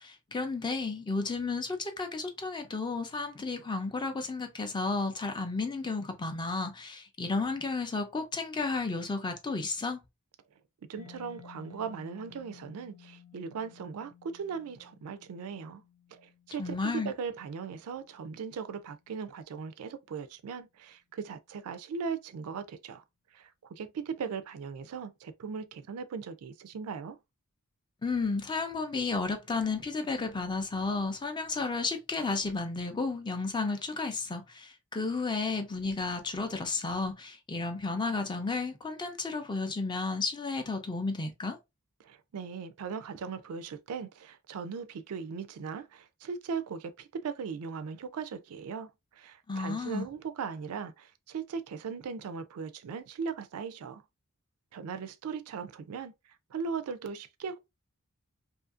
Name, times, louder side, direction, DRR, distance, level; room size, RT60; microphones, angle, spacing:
voice 1, 0.0-10.0 16.6-17.1 28.0-41.6 49.5-50.1, left 3 dB, 20° left, 0.4 m, -32 dB
voice 2, 10.9-15.8 16.1-23.0 23.3-27.2 42.0-54.0 54.7-56.1 56.5-57.6, right 6 dB, 75° right, 0.4 m, -38 dB
Mallet percussion, 11.0-18.5, left 9 dB, 90° left, 1.1 m, -56 dB
2.7 x 2.4 x 2.3 m
head